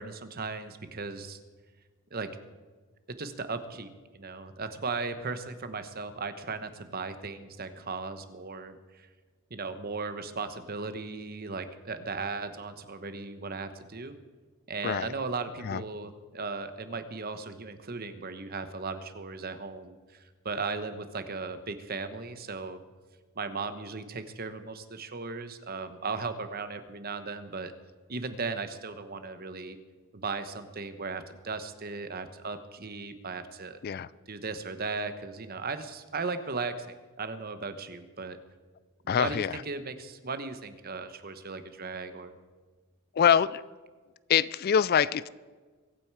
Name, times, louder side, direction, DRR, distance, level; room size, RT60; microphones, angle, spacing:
voice 1, 0.0-1.4 2.1-2.3 3.1-9.1 9.5-14.2 14.7-20.2 20.4-22.8 23.4-27.7 28.1-29.8 30.1-33.8 34.3-36.9 37.2-38.4 39.0-42.4, right 4 dB, 45° right, 10 dB, 1.0 m, -37 dB
voice 2, 39.1-39.6 43.1-43.6 44.3-45.3, left 8 dB, 45° left, 18 dB, 0.3 m, -24 dB
23.0 x 9.0 x 4.8 m, 1.4 s
head